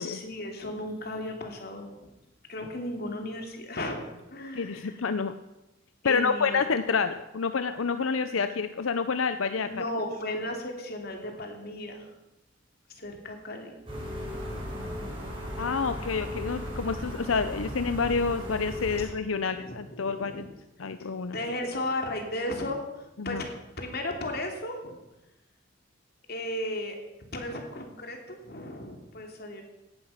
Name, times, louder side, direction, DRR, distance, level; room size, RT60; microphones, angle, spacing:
voice 1, 0.0-2.1 2.5-4.0 4.3-5.0 6.0-6.6 9.7-12.1 12.9-13.7 19.0-19.1 19.4-20.5 21.0-23.5 23.8-25.0 26.3-27.0 27.3-29.6, left 1 dB, 50° left, 3 dB, 2.9 m, -35 dB
voice 2, 4.5-5.4 6.0-9.8 15.6-20.5 20.8-21.4 23.2-23.4, left 5 dB, 90° left, 10 dB, 0.7 m, -28 dB
sound 1, 13.9-19.0, equal, 25° right, 5.1 m, -36 dB
17.5 x 11.0 x 5.7 m, 0.97 s
head